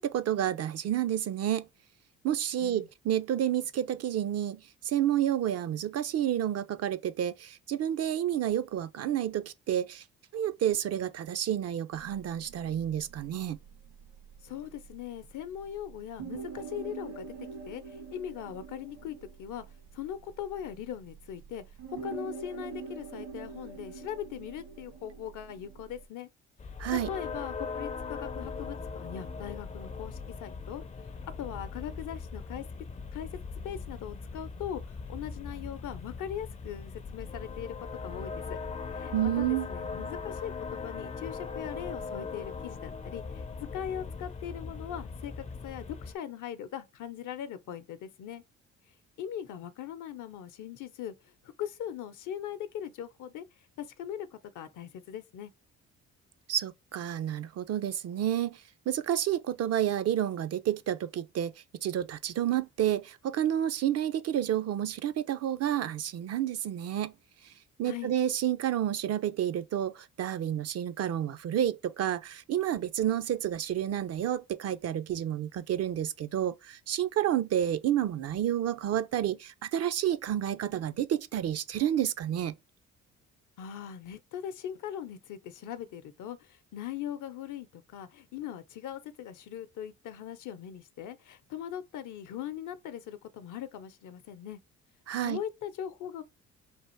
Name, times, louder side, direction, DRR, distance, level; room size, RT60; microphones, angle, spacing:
voice 1, 0.0-1.7 2.2-10.0 10.3-13.6 26.8-27.1 39.1-39.7 56.5-61.5 61.8-67.1 67.4-67.5 67.8-82.5 95.1-95.4, right 11 dB, 50° right, 0.5 m, -30 dB
sound 1, 11.9-26.1, right 6 dB, 75° right, 1.5 m, -46 dB
voice 2, 14.4-17.3 17.7-19.6 19.9-21.6 22.0-26.3 27.1-30.8 31.4-32.6 33.1-33.3 33.6-38.6 38.9-43.4 43.7-48.4 49.2-51.3 51.6-53.4 53.8-55.5 67.8-68.1 83.6-94.6 95.2-96.2, left 10 dB, 65° left, 0.7 m, -40 dB
sound 2, 26.6-46.2, left 4 dB, 20° left, 0.5 m, -40 dB
3.5 x 2.5 x 4.3 m
supercardioid pair, 70°, 33 cm